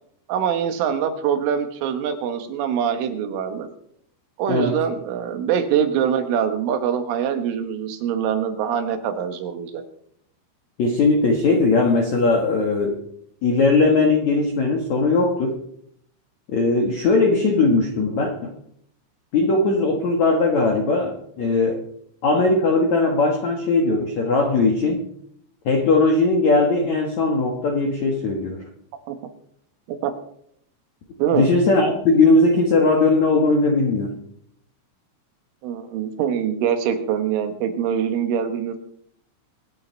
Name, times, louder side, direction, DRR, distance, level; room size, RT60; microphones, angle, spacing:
voice 1, 0.3-3.7 4.4-9.8 29.1-29.2 30.0-30.1 31.2-31.5 35.6-38.8, right 8 dB, 80° right, 8 dB, 3.8 m, -24 dB
voice 2, 10.8-13.0 13.4-15.6 16.5-18.5 19.3-21.8 22.2-25.0 25.6-28.6 31.3-34.2, left 3 dB, 65° left, 1 dB, 1.8 m, -19 dB
25.0 x 8.7 x 4.5 m, 0.69 s
omnidirectional pair, 5.6 m